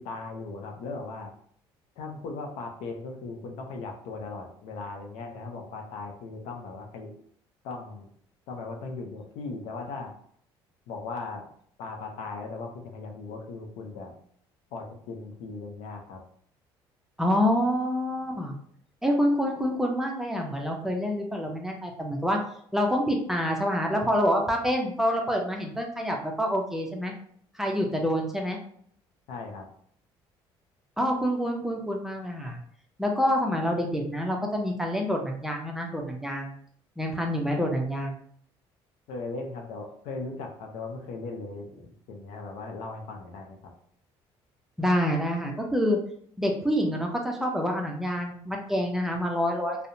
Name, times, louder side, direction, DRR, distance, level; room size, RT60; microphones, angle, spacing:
voice 1, 0.0-1.3 2.0-7.1 7.6-8.1 8.5-10.2 10.9-11.4 11.8-14.1 14.7-16.2 29.3-29.7 39.1-43.7, left 3 dB, 80° left, 3 dB, 0.5 m, -38 dB
voice 2, 17.2-18.5 19.0-22.4 22.7-27.1 27.5-28.6 31.0-32.6 33.0-36.5 37.0-38.2 44.8-46.0 46.4-49.8, equal, 5° right, 1 dB, 0.5 m, -27 dB
2.6 x 2.0 x 2.6 m, 0.62 s
cardioid pair, 100°, 10 cm